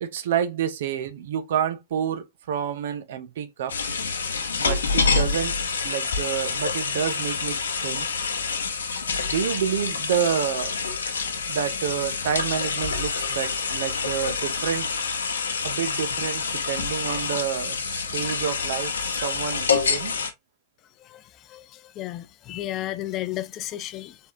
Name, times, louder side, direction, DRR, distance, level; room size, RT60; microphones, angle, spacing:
voice 1, 0.0-3.7 4.6-5.6 5.8-8.1 9.3-10.7 11.5-14.9 15.6-20.2, right 8 dB, 60° right, 0.6 m, -28 dB
sound 1, 3.7-20.3, left 5 dB, 70° left, 0.7 m, -27 dB
voice 2, 21.5-24.2, left 14 dB, 35° left, 0.4 m, -33 dB
4.1 x 3.5 x 2.6 m
figure-of-eight pair, 90°, 0 cm